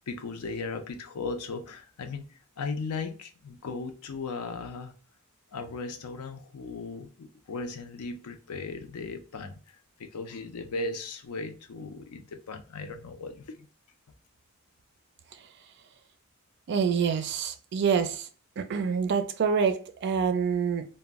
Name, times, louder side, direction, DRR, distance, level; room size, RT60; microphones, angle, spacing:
voice 1, 0.1-4.9 5.5-13.7, left 3 dB, 85° left, 0.5 m, -37 dB
voice 2, 16.7-18.3 18.6-20.9, right 6 dB, 50° right, 0.4 m, -26 dB
2.1 x 2.0 x 3.4 m
head